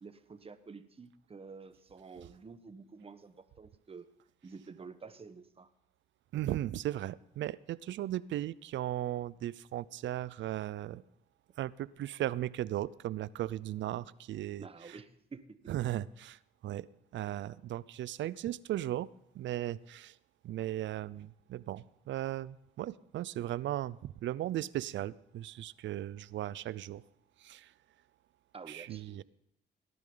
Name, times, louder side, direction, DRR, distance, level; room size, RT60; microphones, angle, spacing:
voice 1, 0.0-4.1 4.4-5.7 14.6-15.6 28.5-29.2, right 4 dB, 30° right, 10 dB, 1.2 m, -50 dB
voice 2, 6.3-11.0 11.6-15.0 15.7-16.9 17.1-19.1 19.3-20.2 20.4-27.0 27.4-27.7 28.7-29.2, right 13 dB, 70° right, 20 dB, 0.5 m, -37 dB
18.5 x 11.0 x 3.9 m, 0.80 s
cardioid pair, 90°, 20 cm